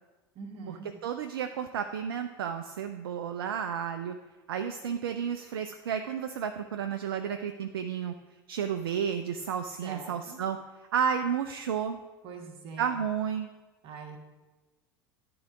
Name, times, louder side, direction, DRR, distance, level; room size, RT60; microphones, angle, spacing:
voice 1, 0.3-0.9 9.8-10.4 12.2-12.9 13.8-14.2, right 5 dB, 45° right, 2 dB, 1.3 m, -43 dB
voice 2, 1.0-4.1 4.5-8.1 8.5-10.6 10.9-12.0 12.8-13.5, right 7 dB, 70° right, 7 dB, 0.4 m, -32 dB
11.0 x 3.8 x 4.7 m, 1.2 s
figure-of-eight pair, 75°, 13 cm